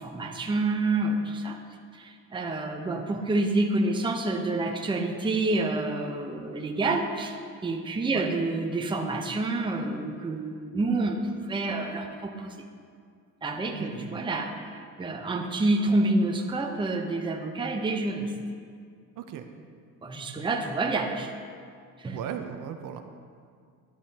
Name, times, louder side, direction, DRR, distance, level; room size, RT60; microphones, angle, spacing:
voice 1, 0.0-1.6 1.9-12.5 13.4-18.3 20.0-21.3 22.0-22.2, right 2 dB, 15° right, 2 dB, 0.8 m, -28 dB
voice 2, 13.8-14.2 19.2-19.5 22.1-23.0, right 9 dB, 60° right, 6 dB, 0.8 m, -37 dB
12.0 x 11.0 x 2.9 m, 2.1 s
cardioid pair, 125°, 37 cm